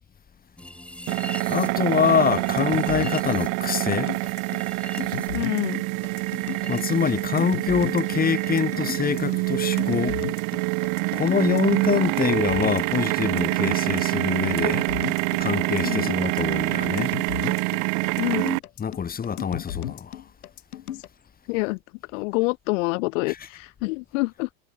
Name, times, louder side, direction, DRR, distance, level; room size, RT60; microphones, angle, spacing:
sound 1, 0.6-7.1 7.3-8.5, left 1 dB, 5° left, 3.1 m, -44 dB
sound 2, 1.1-18.6, right 34 dB, 45° right, 0.7 m, -26 dB
voice 1, 1.5-4.2 6.7-10.2 11.1-14.9 15.4-17.1 18.8-20.2, left 7 dB, 20° left, 2.5 m, -25 dB
sound 3, 2.6-21.1, left 12 dB, 85° left, 5.7 m, -35 dB
voice 2, 5.3-5.8 15.8-16.1 18.2-18.6 20.9-21.0 21.5-24.5, left 26 dB, 60° left, 0.8 m, -27 dB
hypercardioid pair, 115°, 43 cm